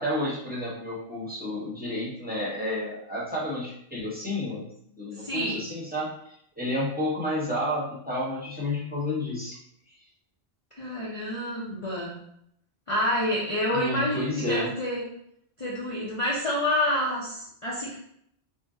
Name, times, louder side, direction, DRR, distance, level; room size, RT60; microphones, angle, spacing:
voice 1, 0.0-4.7 5.0-9.6 13.7-14.7, left 1 dB, 10° right, -7 dB, 0.9 m, -31 dB
voice 2, 5.1-5.6 10.8-12.1 12.9-15.1 15.6-17.9, left 1 dB, 40° left, -6 dB, 0.6 m, -28 dB
2.7 x 2.1 x 3.5 m, 0.72 s
omnidirectional pair, 1.1 m